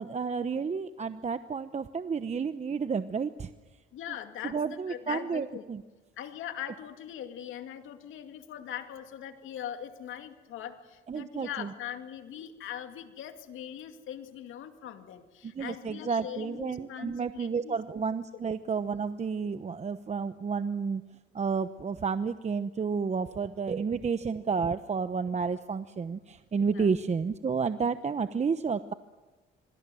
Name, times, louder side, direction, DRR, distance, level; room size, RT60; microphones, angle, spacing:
voice 1, 0.0-3.5 4.5-5.8 11.1-11.7 15.5-21.0 21.3-28.9, right 5 dB, 35° right, 11 dB, 1.0 m, -31 dB
voice 2, 3.9-5.6 6.2-17.8 26.6-26.9, left 10 dB, 85° left, 7 dB, 2.4 m, -41 dB
25.5 x 25.0 x 7.8 m, 1.2 s
cardioid pair, 90°, 20 cm